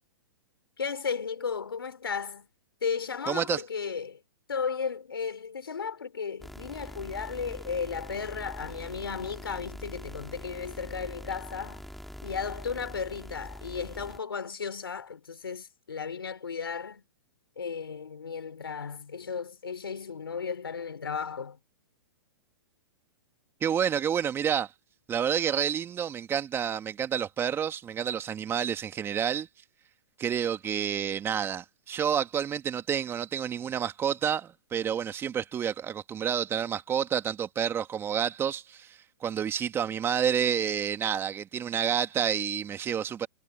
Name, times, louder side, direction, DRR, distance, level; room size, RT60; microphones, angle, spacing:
voice 1, 0.8-2.5 2.8-4.2 4.5-11.8 12.2-17.0 17.6-21.6, left 6 dB, 90° left, 4.4 m, -34 dB
voice 2, 3.3-3.6 23.6-24.7 25.1-29.5 30.2-43.3, right 8 dB, 20° right, 2.0 m, -29 dB
sound 1, 6.4-14.2, equal, ahead, 2.8 m, -43 dB
hypercardioid pair, 125°, 12 cm